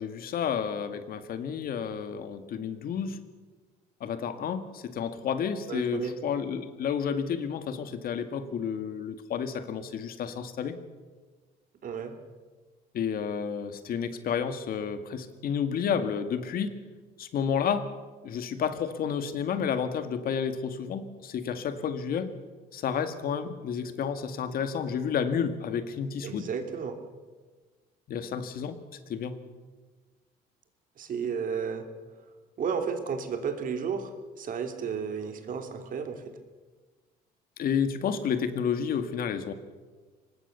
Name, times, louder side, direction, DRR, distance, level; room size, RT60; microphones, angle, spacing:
voice 1, 0.0-3.2 4.0-10.8 12.9-16.8 17.2-17.9 18.2-22.3 22.7-26.5 28.1-28.8 29.1-29.4 37.6-39.5, left 7 dB, 60° left, 9 dB, 2.0 m, -31 dB
voice 2, 5.7-6.1 11.8-12.1 26.2-27.0 31.0-31.8 32.6-34.1 34.4-36.4, right 6 dB, 55° right, 6 dB, 3.1 m, -32 dB
24.0 x 20.0 x 6.9 m, 1.4 s
cardioid pair, 110°, 17 cm